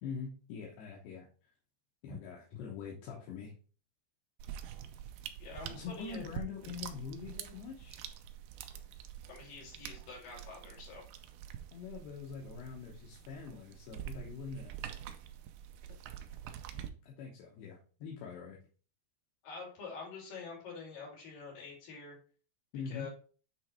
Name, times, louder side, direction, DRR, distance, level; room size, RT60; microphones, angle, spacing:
voice 1, 0.0-1.5 2.0-3.5 5.7-8.0 11.7-14.7 16.7-18.6 22.7-23.1, left 6 dB, 80° left, -1 dB, 3.0 m, -44 dB
sound 1, 4.4-16.9, right 10 dB, 85° right, 2.0 m, -46 dB
voice 2, 5.4-6.3 9.3-11.1 19.4-22.2 22.9-23.1, left 5 dB, 55° left, -2 dB, 4.0 m, -46 dB
8.7 x 3.2 x 4.3 m, 0.40 s
omnidirectional pair, 4.8 m